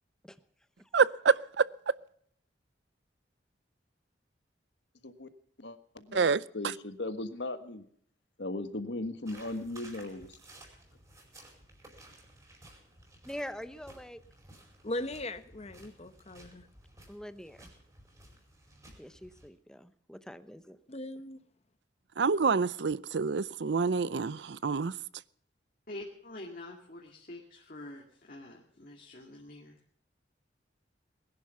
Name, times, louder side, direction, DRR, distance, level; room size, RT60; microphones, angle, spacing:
voice 1, 0.9-1.7 6.1-6.4 22.2-24.9, right 5 dB, 65° right, 0.5 m, -27 dB
voice 2, 5.6-7.8 8.4-10.4, left 2 dB, 70° left, 1.5 m, -38 dB
sound 1, 9.3-19.5, right 1 dB, 20° right, 5.0 m, -55 dB
voice 3, 13.2-14.2 17.1-17.7 19.0-20.8, equal, 5° left, 0.8 m, -44 dB
voice 4, 14.8-16.7 20.9-21.4, left 1 dB, 35° left, 1.1 m, -39 dB
voice 5, 25.9-29.8, left 1 dB, 50° left, 2.2 m, -46 dB
20.5 x 11.0 x 5.7 m
head